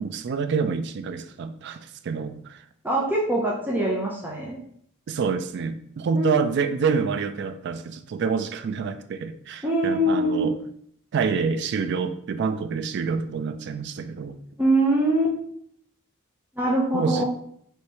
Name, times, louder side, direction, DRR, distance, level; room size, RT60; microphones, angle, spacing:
voice 1, 0.0-2.6 5.1-10.5 11.1-14.4 16.9-17.2, right 5 dB, 55° right, 10 dB, 0.3 m, -27 dB
voice 2, 2.8-4.6 6.1-6.4 9.6-10.5 14.6-15.4 16.6-17.2, right 1 dB, 10° right, -4 dB, 0.6 m, -23 dB
4.7 x 3.2 x 2.9 m, 0.66 s
head